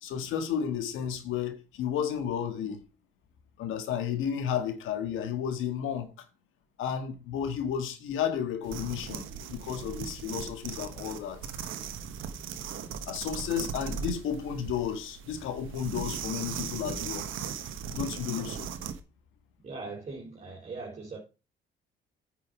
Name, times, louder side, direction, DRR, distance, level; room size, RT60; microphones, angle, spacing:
voice 1, 0.0-2.8 3.6-6.1 6.8-11.5 13.1-17.3 17.9-18.7, left 8 dB, 85° left, 1.7 m, -32 dB
sound 1, 8.6-19.0, right 7 dB, 85° right, 1.2 m, -38 dB
voice 2, 19.6-21.2, right 3 dB, 35° right, 3.4 m, -40 dB
9.2 x 5.6 x 4.9 m
cardioid pair, 90°, 20 cm